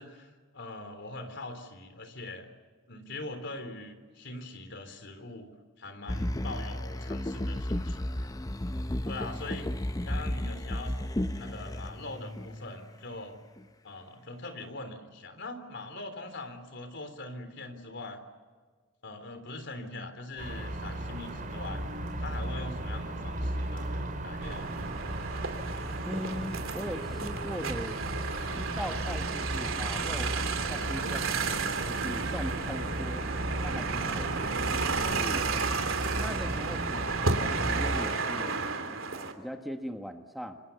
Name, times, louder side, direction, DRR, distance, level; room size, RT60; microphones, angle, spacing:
voice 1, 0.0-2.5 2.9-5.5 5.8-8.3 9.1-9.7 10.1-11.0 11.3-13.4 13.8-18.2 19.0-24.8, left 2 dB, 60° left, 8 dB, 3.7 m, -42 dB
sound 1, 6.1-13.0 13.6-13.7, left 1 dB, 20° left, 0.7 m, -33 dB
sound 2, 20.4-38.0, right 1 dB, 45° right, 4.9 m, -36 dB
sound 3, 24.4-39.3, right 4 dB, 85° right, 3.0 m, -32 dB
voice 2, 26.1-28.0 28.5-30.3 30.7-31.5 31.9-33.3 33.6-34.3 35.0-35.5 36.2-38.6 39.1-40.6, equal, ahead, 4 dB, 1.4 m, -40 dB
28.0 x 25.5 x 7.0 m, 1.5 s
head